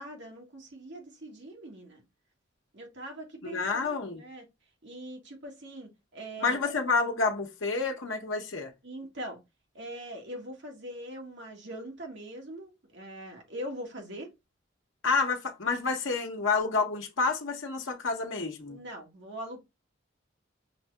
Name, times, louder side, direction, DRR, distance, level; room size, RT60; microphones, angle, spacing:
voice 1, 0.0-2.0 2.7-4.4 4.8-6.6 8.8-9.4 9.7-14.3 18.7-19.6, right 1 dB, 60° right, 1.5 m, -42 dB
voice 2, 3.4-4.2 6.4-8.7 15.0-18.8, left 4 dB, 75° left, 0.9 m, -29 dB
5.8 x 2.7 x 2.3 m
head